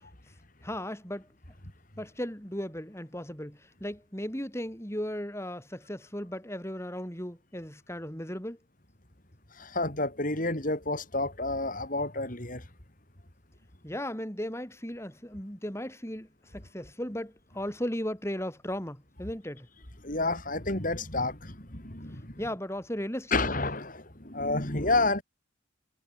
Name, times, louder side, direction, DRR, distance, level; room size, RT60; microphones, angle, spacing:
voice 1, 0.6-1.3 2.0-8.6 13.8-19.7 22.4-23.4, equal, 15° left, 4.7 m, -36 dB
voice 2, 9.5-12.7 20.0-22.4 23.3-25.2, left 2 dB, 40° left, 4.5 m, -30 dB
head